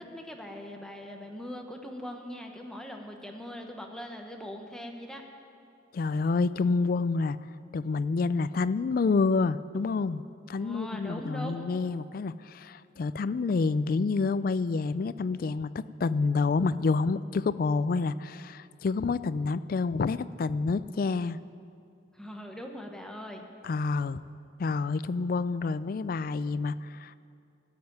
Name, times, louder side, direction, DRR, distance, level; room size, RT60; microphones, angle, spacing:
voice 1, 0.0-5.2 10.6-11.7 22.1-23.4, equal, 5° left, 2 dB, 1.0 m, -41 dB
voice 2, 5.9-7.4 7.7-10.2 10.5-21.4 23.6-24.2 24.6-27.2, left 4 dB, 50° left, 15 dB, 0.3 m, -28 dB
13.0 x 7.6 x 9.4 m, 2.4 s
head